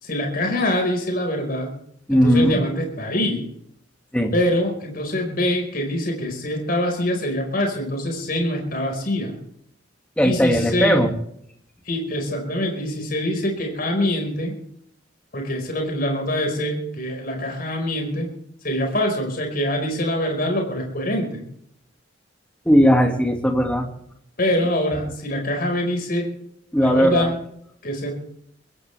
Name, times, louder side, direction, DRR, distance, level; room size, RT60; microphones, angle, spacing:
voice 1, 0.0-1.7 2.1-3.5 4.3-9.3 10.2-11.0 11.8-14.5 15.3-18.3 18.6-21.4 24.4-26.3 26.8-27.4 27.8-28.2, left 1 dB, 50° left, 2 dB, 5.0 m, -24 dB
voice 2, 2.1-2.6 4.1-4.3 10.2-11.1 22.7-23.9 26.7-27.3, equal, 5° left, 3 dB, 2.2 m, -17 dB
23.0 x 16.0 x 3.4 m, 0.70 s
head